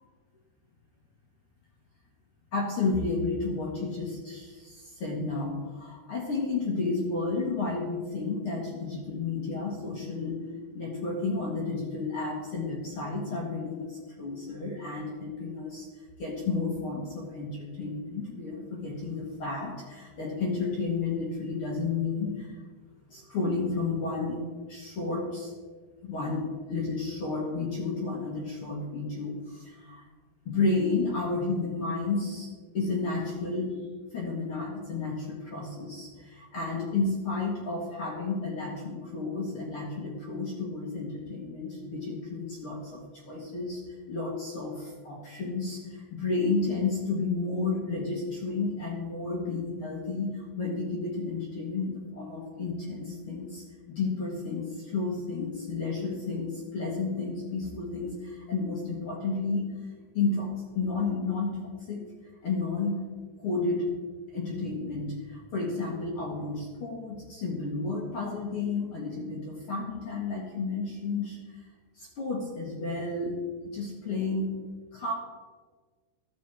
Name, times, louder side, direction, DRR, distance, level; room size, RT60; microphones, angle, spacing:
voice 1, 2.5-10.4 10.7-15.9 16.2-22.6 23.1-24.4 24.7-25.5 26.0-30.0 30.4-32.5 32.7-33.8 34.1-43.8 44.1-59.7 60.1-61.5 61.9-62.0 62.4-63.0 63.4-63.9 64.3-71.6 71.9-74.6 74.9-75.1, left 3 dB, 55° left, -2 dB, 1.6 m, -32 dB
12.5 x 7.3 x 4.4 m, 1.5 s
omnidirectional pair, 4.0 m